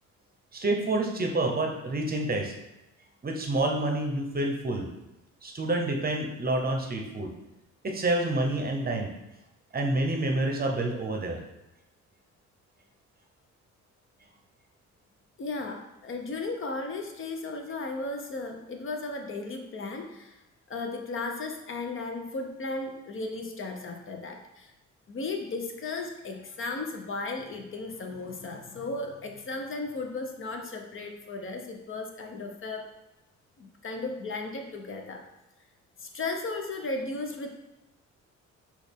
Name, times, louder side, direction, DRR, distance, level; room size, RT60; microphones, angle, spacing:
voice 1, 0.5-2.5 3.2-4.9 5.4-7.3 7.8-9.1 9.7-11.4, right 2 dB, 30° right, 2 dB, 0.7 m, -28 dB
voice 2, 15.4-20.4 20.7-24.7 25.1-32.9 33.6-35.2 36.0-37.5, left 3 dB, 45° left, 4 dB, 0.7 m, -35 dB
6.1 x 2.4 x 3.5 m, 0.96 s
cardioid pair, 90°, 30 cm